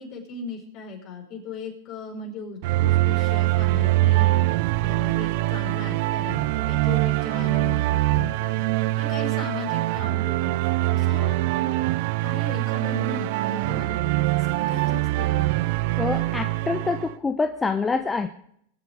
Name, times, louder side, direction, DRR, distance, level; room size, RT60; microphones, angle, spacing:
voice 1, 0.0-4.5 4.8-8.6 9.0-11.8 12.2-15.7, left 3 dB, 45° left, 2 dB, 5.1 m, -37 dB
sound 1, 2.6-17.1, right 18 dB, 60° right, 0.7 m, -23 dB
voice 2, 16.0-18.3, left 4 dB, 15° left, 7 dB, 0.9 m, -26 dB
23.0 x 8.0 x 5.0 m, 0.68 s
hypercardioid pair, 100°, 0 cm